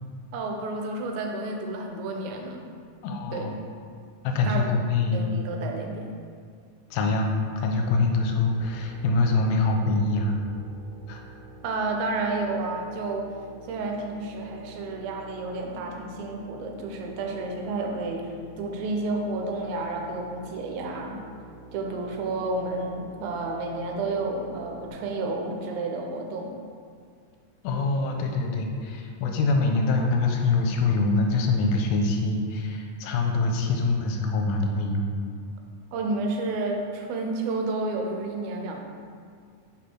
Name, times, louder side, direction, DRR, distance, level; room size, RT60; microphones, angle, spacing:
voice 1, 0.3-2.6 3.3-3.5 4.5-4.8 5.1-6.1 11.6-13.3 13.7-21.2 21.7-26.5 35.9-38.8, right 2 dB, 85° right, 2 dB, 2.5 m, -31 dB
voice 2, 3.0-3.6 4.2-5.4 6.9-10.3 11.1-11.2 27.6-35.1, left 3 dB, 85° left, 2 dB, 2.3 m, -24 dB
sound 1, 7.7-24.9, right 2 dB, 65° right, 2.4 m, -48 dB
5.4 x 4.2 x 4.5 m, 2.2 s
omnidirectional pair, 4.2 m